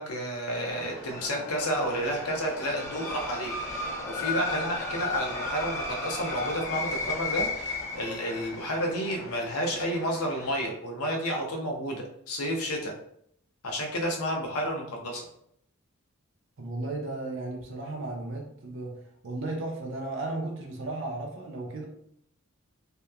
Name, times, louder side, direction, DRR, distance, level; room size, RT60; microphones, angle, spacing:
voice 1, 0.0-13.0 13.6-15.2, equal, 80° left, 1 dB, 0.6 m, -31 dB
sound 1, 0.7-10.7, left 3 dB, 10° left, 0.6 m, -35 dB
voice 2, 16.6-19.0 19.2-21.8, right 2 dB, 55° right, 1 dB, 0.5 m, -34 dB
2.8 x 2.1 x 2.3 m, 0.69 s
head